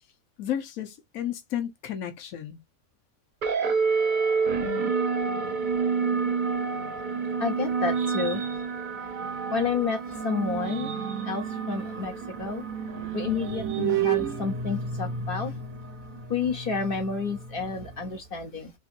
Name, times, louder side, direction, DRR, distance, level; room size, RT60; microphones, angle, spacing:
voice 1, 0.4-2.6, left 10 dB, 85° left, 1.2 m, -32 dB
sound 1, 3.4-18.2, right 4 dB, 45° right, 0.8 m, -30 dB
sound 2, 6.7-9.9 10.4-15.6, right 13 dB, 70° right, 0.9 m, -34 dB
voice 2, 7.4-8.4 9.5-10.9 11.2-12.6 12.9-15.6 16.3-18.7, left 5 dB, 45° left, 1.0 m, -30 dB
3.7 x 2.7 x 2.5 m
omnidirectional pair, 1.4 m